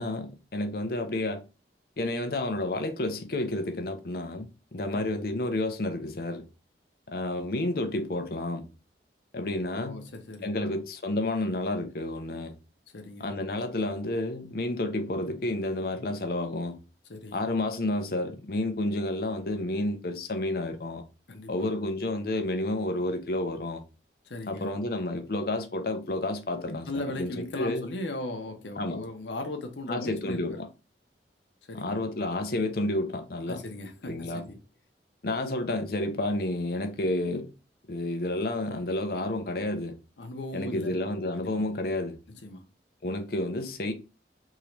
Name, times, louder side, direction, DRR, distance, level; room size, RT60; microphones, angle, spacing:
voice 1, 0.0-1.4 2.0-6.4 7.1-8.7 9.3-10.1 10.4-12.5 13.2-16.8 17.3-21.0 21.5-23.8 24.5-27.9 28.8-29.0 29.9-30.7 31.7-33.6 34.0-34.5 35.2-37.5 37.9-40.0 40.5-42.2 43.0-43.9, left 1 dB, 55° left, 0.7 m, -30 dB
voice 2, 9.7-10.8 12.9-13.3 17.1-17.4 21.3-21.7 24.2-24.7 26.9-30.6 31.7-32.0 33.5-34.6 40.2-41.0 41.4-41.6 42.4-42.6, left 2 dB, 90° left, 0.8 m, -38 dB
3.7 x 2.9 x 3.2 m
head